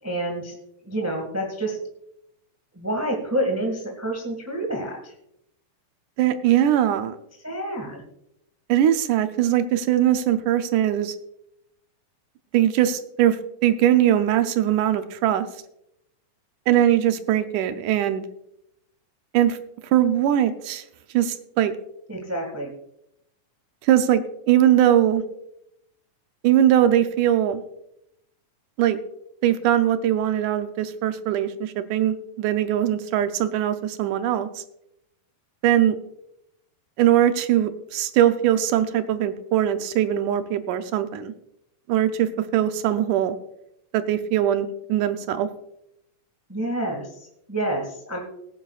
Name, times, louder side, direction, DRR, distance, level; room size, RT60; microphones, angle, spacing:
voice 1, 0.0-0.6 0.8-1.8 2.7-5.1 7.4-8.0 22.1-22.7 46.5-48.2, right 1 dB, 10° right, 1 dB, 1.0 m, -28 dB
voice 2, 6.2-7.2 8.7-11.2 12.5-13.4 13.6-15.5 16.7-18.2 19.3-19.6 19.9-20.8 21.1-21.7 23.8-25.2 26.4-27.6 28.8-29.0 29.4-34.5 35.6-36.0 37.0-41.3 41.9-43.4 43.9-45.5, right 11 dB, 80° right, 9 dB, 2.1 m, -21 dB
20.0 x 10.0 x 2.4 m, 0.78 s
omnidirectional pair, 3.7 m